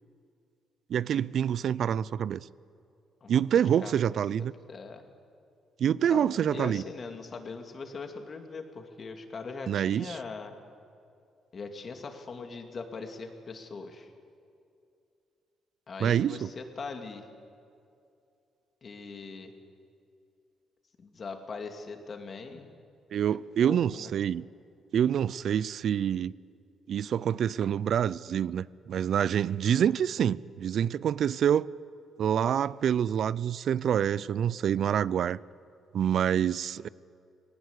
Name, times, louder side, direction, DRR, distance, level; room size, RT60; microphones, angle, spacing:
voice 1, 0.9-2.5 3.3-4.5 5.8-6.8 9.7-10.2 16.0-16.5 23.1-24.4 24.9-26.3 26.9-31.7 32.2-35.4 35.9-36.9, right 9 dB, 65° right, 0.4 m, -26 dB
voice 2, 4.7-5.0 6.1-10.5 11.5-14.1 15.9-17.3 18.8-19.5 21.0-22.7 23.3-24.1, left 4 dB, 45° left, 2.4 m, -41 dB
19.5 x 18.5 x 8.2 m
cardioid pair, 90°, 0 cm